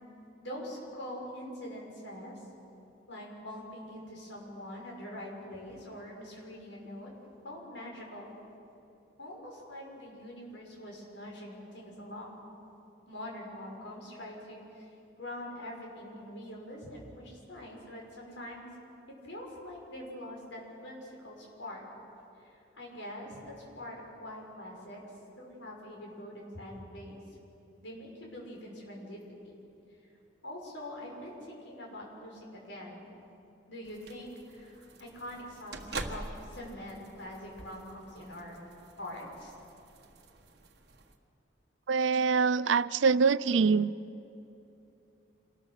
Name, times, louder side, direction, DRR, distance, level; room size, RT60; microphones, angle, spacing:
voice 1, 0.4-2.4 3.1-7.1 7.4-8.3 9.2-12.5 13.1-14.9 15.2-18.7 19.2-21.8 22.4-25.0 25.4-27.2 27.8-29.6 30.4-33.0 33.7-38.6 39.0-39.5, left 1 dB, 75° left, -1 dB, 6.1 m, -44 dB
sound 1, 33.8-41.1, right 2 dB, 55° right, 1.6 m, -46 dB
voice 2, 41.9-43.9, right 5 dB, 75° right, 18 dB, 0.5 m, -24 dB
27.0 x 20.5 x 6.6 m, 2.8 s
head